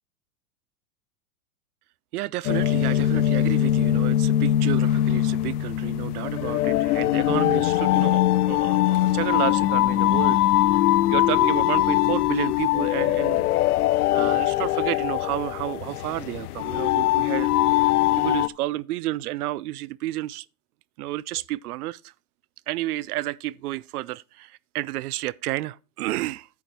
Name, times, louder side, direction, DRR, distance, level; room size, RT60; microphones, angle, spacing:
voice 1, 2.1-10.5 10.7-10.8 11.1-13.5 14.1-17.6 18.1-20.5 21.0-22.1 22.7-26.5, right 16 dB, 75° right, 0.5 m, -31 dB
sound 1, 2.4-18.5, left 13 dB, 80° left, 0.7 m, -22 dB
9.4 x 7.1 x 4.3 m
supercardioid pair, 170°, 45 cm